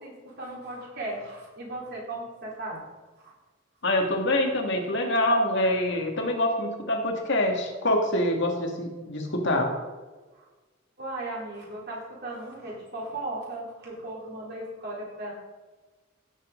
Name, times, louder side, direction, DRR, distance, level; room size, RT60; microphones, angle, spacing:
voice 1, 0.0-2.8 3.2-3.3 10.3-10.4 11.0-15.3, right 2 dB, 55° right, -4 dB, 4.0 m, -37 dB
voice 2, 3.8-9.7, left 1 dB, 60° left, 2 dB, 2.0 m, -25 dB
16.5 x 7.5 x 3.9 m, 1.3 s
head